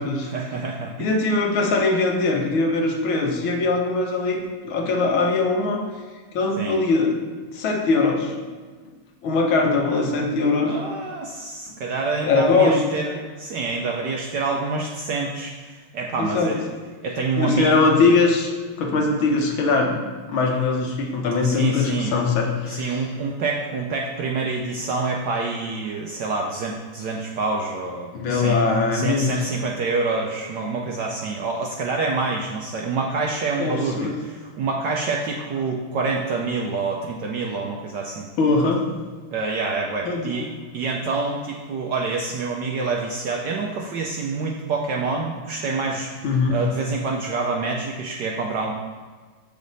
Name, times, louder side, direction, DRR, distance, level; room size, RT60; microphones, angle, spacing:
voice 1, 0.3-1.1 6.6-6.8 10.6-16.6 17.0-18.0 21.4-22.2 22.7-28.6 28.9-38.3 39.3-40.5 40.7-48.7, right 4 dB, 70° right, 0 dB, 1.0 m, -27 dB
voice 2, 1.0-5.8 6.3-7.1 7.5-8.3 9.2-10.7 12.2-12.9 16.2-16.6 17.4-18.5 18.8-20.0 20.3-23.0 28.1-29.4 33.6-34.2 38.4-38.8 40.1-40.4 46.2-46.7, left 3 dB, 70° left, 1 dB, 1.7 m, -21 dB
7.6 x 5.2 x 4.0 m, 1.5 s
omnidirectional pair, 2.4 m